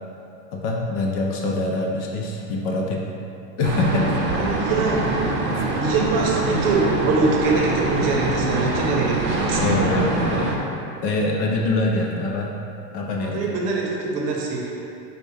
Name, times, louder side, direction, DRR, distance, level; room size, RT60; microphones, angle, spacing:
voice 1, 0.5-3.1 3.6-4.1 4.4-4.7 9.6-10.6 11.0-12.5 12.9-13.6, left 2 dB, 40° left, -1 dB, 0.5 m, -24 dB
sound 1, 3.6-10.5, right 2 dB, 25° right, 0.5 m, -24 dB
voice 2, 4.3-5.0 5.8-9.6 13.2-14.7, right 3 dB, 50° right, -1 dB, 0.8 m, -23 dB
5.0 x 2.3 x 3.3 m, 2.8 s
hypercardioid pair, 100°, 48 cm